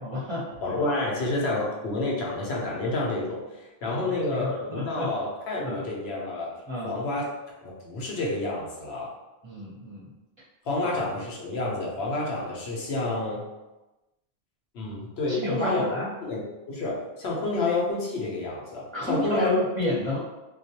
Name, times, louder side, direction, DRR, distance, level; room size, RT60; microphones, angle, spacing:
voice 1, 0.0-0.5 1.3-1.4 3.8-5.1 5.6-5.8 6.7-7.0 9.4-10.1 10.8-10.9 15.4-16.1 18.9-20.2, left 1 dB, 30° right, -8 dB, 0.7 m, -31 dB
voice 2, 0.6-6.5 6.8-7.2 7.6-9.1 10.6-13.4 14.7-15.9 16.2-19.6, left 2 dB, 85° left, -3 dB, 0.9 m, -29 dB
2.3 x 2.2 x 2.7 m, 1.0 s
omnidirectional pair, 1.0 m